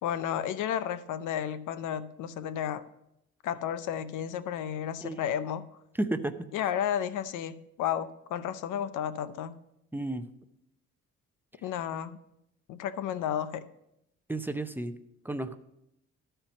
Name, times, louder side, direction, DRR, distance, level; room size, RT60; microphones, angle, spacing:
voice 1, 0.0-2.8 3.4-5.7 6.5-9.6 11.6-12.2 12.7-13.7, left 9 dB, 80° left, 15 dB, 0.6 m, -32 dB
voice 2, 6.0-6.3 9.9-10.2 14.3-14.9 15.2-15.5, right 2 dB, 5° right, 9 dB, 0.6 m, -32 dB
13.0 x 4.5 x 5.1 m, 0.81 s
cardioid pair, 90°, 30 cm